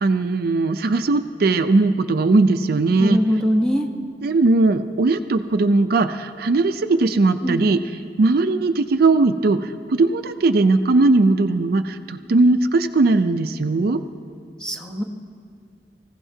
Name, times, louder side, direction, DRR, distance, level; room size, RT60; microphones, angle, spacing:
voice 1, 0.0-3.2 4.2-7.8 8.2-14.0, right 3 dB, 60° right, 9 dB, 0.4 m, -18 dB
voice 2, 3.0-3.9 7.4-7.7 14.6-15.0, equal, 5° left, 1 dB, 1.0 m, -22 dB
25.5 x 15.5 x 2.7 m, 2.4 s
head